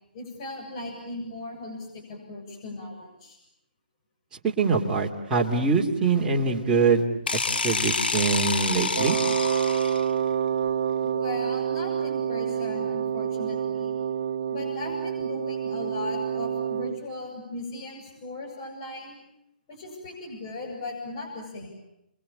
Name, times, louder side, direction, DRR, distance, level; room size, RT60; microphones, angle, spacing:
voice 1, 0.1-3.4 11.0-14.0 14.5-19.2 19.7-21.7, left 2 dB, 35° left, 1 dB, 7.5 m, -37 dB
voice 2, 4.4-7.0 7.6-9.2, right 4 dB, 15° right, -1 dB, 2.7 m, -23 dB
sound 1, 7.3-10.2, left 4 dB, 85° left, 1.8 m, -28 dB
Wind instrument woodwind instrument, 9.0-17.0, right 8 dB, 45° right, 1.0 m, -28 dB
30.0 x 22.5 x 8.8 m, 0.81 s
hypercardioid pair, 155°, 5 cm